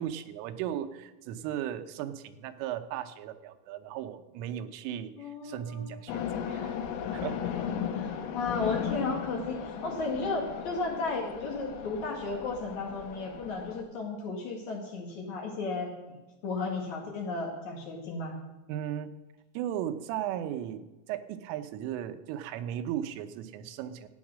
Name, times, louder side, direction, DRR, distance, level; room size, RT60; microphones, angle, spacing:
voice 1, 0.0-6.8 7.1-7.5 18.7-19.1 19.5-24.1, right 10 dB, 85° right, 10 dB, 3.3 m, -36 dB
voice 2, 5.2-5.9 8.0-18.3, left 3 dB, 55° left, 0 dB, 2.3 m, -34 dB
sound 1, 6.1-13.8, left 8 dB, 80° left, 3.6 m, -36 dB
14.5 x 9.4 x 6.3 m, 1.1 s
omnidirectional pair, 5.6 m